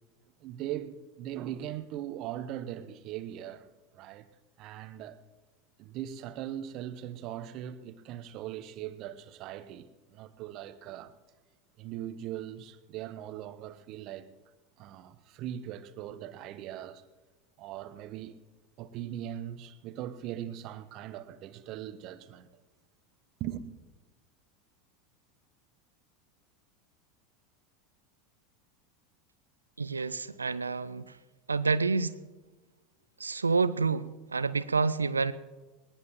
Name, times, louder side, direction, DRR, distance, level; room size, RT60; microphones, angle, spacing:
voice 1, 0.4-3.7 3.9-4.2 4.6-5.2 5.8-11.1 11.8-14.3 14.8-17.0 17.6-18.3 18.8-22.5 23.4-23.6, right 11 dB, 45° right, 0.9 m, -40 dB
voice 2, 29.8-31.0 31.5-32.1 33.2-35.3, right 4 dB, 80° right, 0.5 m, -28 dB
21.0 x 19.0 x 3.1 m
figure-of-eight pair, 80°, 0 cm